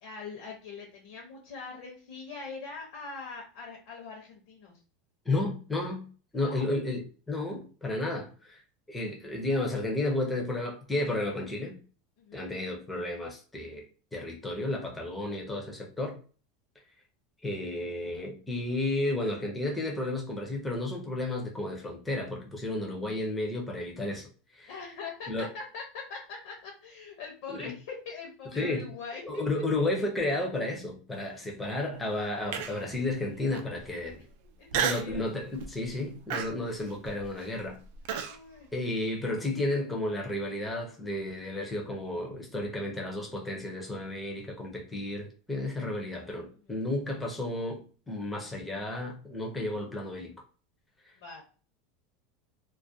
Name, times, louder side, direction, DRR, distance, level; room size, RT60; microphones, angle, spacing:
voice 1, 0.0-4.8 6.4-6.7 12.2-12.4 24.7-29.2 31.2-31.5 33.9-34.0 34.6-35.3 38.1-38.7 45.8-46.0 46.6-46.7 51.2-51.4, left 4 dB, 60° left, 0.7 m, -43 dB
voice 2, 5.3-6.1 6.3-8.6 8.9-11.8 12.3-13.8 14.1-16.2 17.4-24.7 25.3-25.5 27.5-27.7 28.6-28.9 29.2-34.2 34.7-37.8 38.7-50.3 51.1-51.2, left 2 dB, 5° left, 0.5 m, -32 dB
Human voice, 32.5-33.0 33.5-33.6 34.7-35.2 35.6-35.9 36.3-38.4, right 8 dB, 55° right, 0.3 m, -32 dB
2.3 x 2.1 x 2.5 m
supercardioid pair, 175°, 0 cm